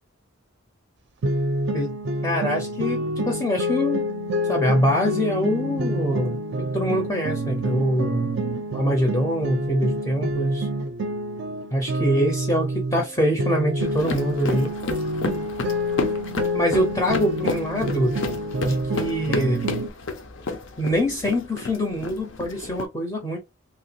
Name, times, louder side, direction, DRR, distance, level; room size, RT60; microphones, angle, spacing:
sound 1, 1.2-13.1 13.4-19.9, equal, 55° right, 0.5 m, -27 dB
voice 1, 2.2-4.0 4.5-6.4 6.7-8.4 8.7-10.7 11.7-14.7 16.5-18.1 18.6-19.7 20.8-23.4, equal, 15° left, 0.5 m, -24 dB
sound 2, 13.8-22.9, left 3 dB, 60° left, 0.6 m, -32 dB
2.9 x 2.3 x 2.7 m
head